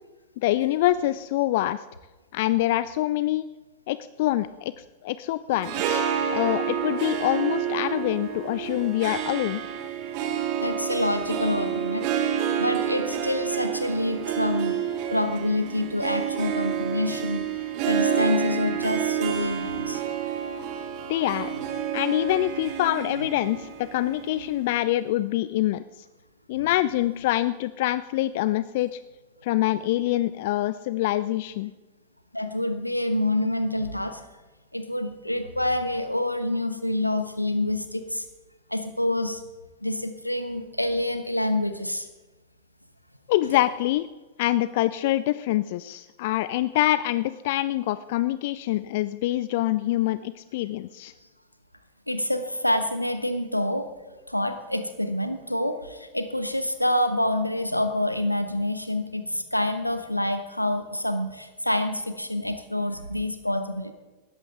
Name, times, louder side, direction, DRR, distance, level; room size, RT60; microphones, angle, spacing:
voice 1, 0.4-1.8 2.3-3.5 3.9-6.0 6.3-9.6 21.1-21.5 21.9-25.8 26.5-29.0 29.4-31.7 43.3-44.1 44.4-51.1, left 15 dB, 50° left, 16 dB, 0.4 m, -25 dB
Harp, 5.5-24.9, right 8 dB, 45° right, 1.8 m, -29 dB
voice 2, 10.6-12.2 12.6-14.8 15.1-20.0 21.6-21.7 23.1-23.3 26.6-26.7 32.3-34.3 34.7-38.3 38.7-39.4 39.8-42.1 43.4-43.5 52.1-53.9 54.3-63.9, left 1 dB, 90° left, 9 dB, 1.2 m, -27 dB
18.5 x 13.5 x 3.8 m, 1.2 s
figure-of-eight pair, 90°, 0 cm